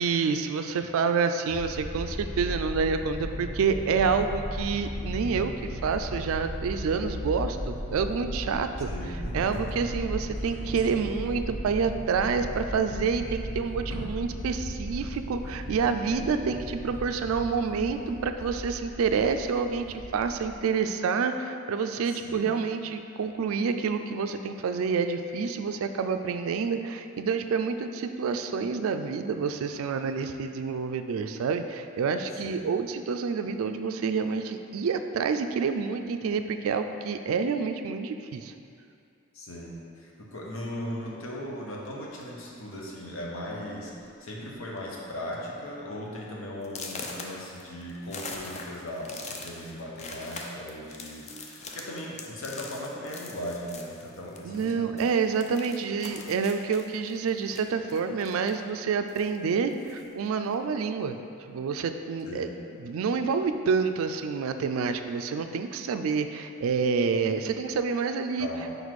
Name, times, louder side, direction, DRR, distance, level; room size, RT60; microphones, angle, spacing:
voice 1, 0.0-8.9 9.3-38.5 54.4-61.2 61.5-62.5 62.8-68.5, right 5 dB, 75° right, 8 dB, 0.3 m, -28 dB
sound 1, 1.5-20.5, equal, 85° left, 1.2 m, -36 dB
voice 2, 8.9-9.8 22.0-22.4 32.4-32.6 39.3-55.0 62.3-62.6 68.4-68.8, left 1 dB, 65° left, -3 dB, 0.9 m, -38 dB
sound 2, 42.1-42.5 43.3-43.4 43.8-44.0 44.3-44.8 45.2-45.3 45.8-45.9 46.6-54.7 55.0-58.7 59.1-60.1, left 3 dB, 30° left, 0.5 m, -42 dB
5.0 x 4.1 x 4.7 m, 2.4 s
head